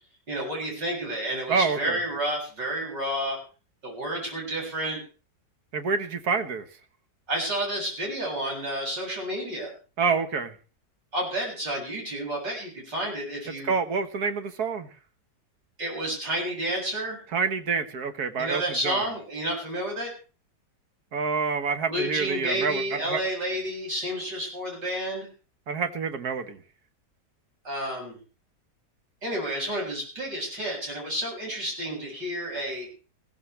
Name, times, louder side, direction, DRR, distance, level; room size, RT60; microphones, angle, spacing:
voice 1, 0.3-3.4 3.8-5.0 7.3-9.7 11.1-13.8 15.8-17.2 18.4-20.1 21.9-25.3 27.6-28.2 29.2-32.9, right 1 dB, 85° right, -2 dB, 7.8 m, -30 dB
voice 2, 1.5-2.0 5.7-6.7 10.0-10.5 13.6-14.9 17.3-19.1 21.1-23.2 25.7-26.6, right 5 dB, 60° right, 9 dB, 1.8 m, -27 dB
20.5 x 15.5 x 3.3 m, 0.36 s
omnidirectional pair, 1.9 m